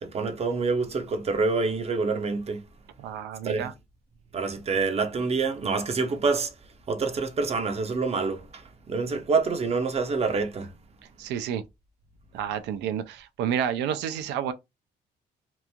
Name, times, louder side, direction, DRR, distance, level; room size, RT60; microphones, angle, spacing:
voice 1, 0.0-2.6 3.4-3.7 4.3-6.5 6.9-10.7, right 4 dB, 35° right, 0.6 m, -27 dB
voice 2, 3.0-3.7 11.2-11.6 12.3-14.5, right 9 dB, 85° right, 0.4 m, -30 dB
2.9 x 2.5 x 2.2 m
cardioid pair, 90°, 18 cm